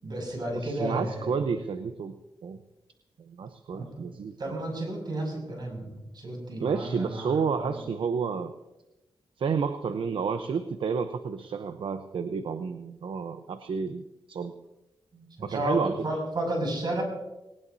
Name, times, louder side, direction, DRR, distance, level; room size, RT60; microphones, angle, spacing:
voice 1, 0.0-1.4 3.7-3.9 4.4-5.9 6.1-7.9 15.1-17.0, right 1 dB, 55° right, 1 dB, 6.1 m, -32 dB
voice 2, 0.5-2.2 2.4-2.6 3.2-4.4 6.6-8.5 9.4-14.5 15.4-15.9, right 6 dB, 75° right, 9 dB, 0.7 m, -30 dB
19.5 x 19.5 x 2.7 m, 0.99 s
wide cardioid pair, 105°, 9 cm